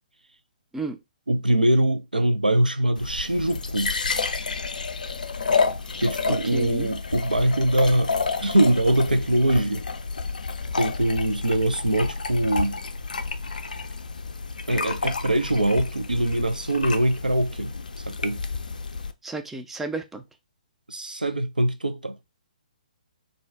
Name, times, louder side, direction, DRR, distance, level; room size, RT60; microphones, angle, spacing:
voice 1, 1.3-3.9 6.0-8.1 8.4-9.8 10.8-12.8 14.7-17.7 18.1-18.4 20.9-22.2, right 1 dB, 90° right, 0.5 m, -23 dB
sound 1, 3.0-19.1, left 4 dB, 70° left, 0.4 m, -30 dB
voice 2, 6.3-6.9 19.2-20.2, right 3 dB, 5° right, 0.4 m, -33 dB
2.6 x 2.1 x 3.4 m
figure-of-eight pair, 130°, 5 cm